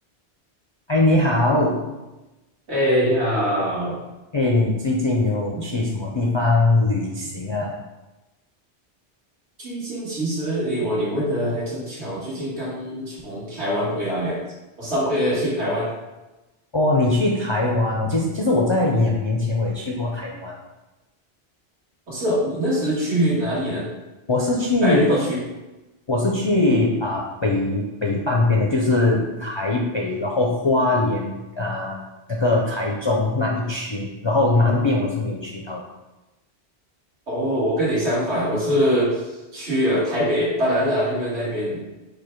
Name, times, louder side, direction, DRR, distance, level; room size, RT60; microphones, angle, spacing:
voice 1, 0.9-1.8 4.3-7.7 16.7-20.5 24.3-25.0 26.1-32.0 32.3-35.8, left 2 dB, 45° left, -2 dB, 0.3 m, -21 dB
voice 2, 2.7-4.0 9.6-14.4 14.8-15.9 22.1-23.9 24.8-25.4 37.3-39.3 39.5-41.8, equal, 85° right, -7 dB, 1.9 m, -23 dB
5.0 x 2.2 x 4.4 m, 1.1 s
omnidirectional pair, 1.1 m